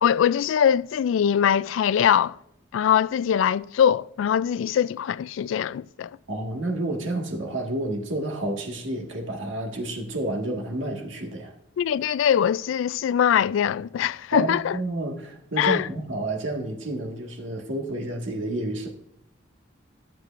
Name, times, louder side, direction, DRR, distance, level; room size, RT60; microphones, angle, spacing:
voice 1, 0.0-2.4 2.7-6.1 11.8-14.8 15.6-15.9, left 8 dB, 90° left, 0.3 m, -22 dB
voice 2, 6.3-11.5 14.3-18.9, right 1 dB, 85° right, 1.7 m, -30 dB
14.0 x 7.5 x 2.5 m
head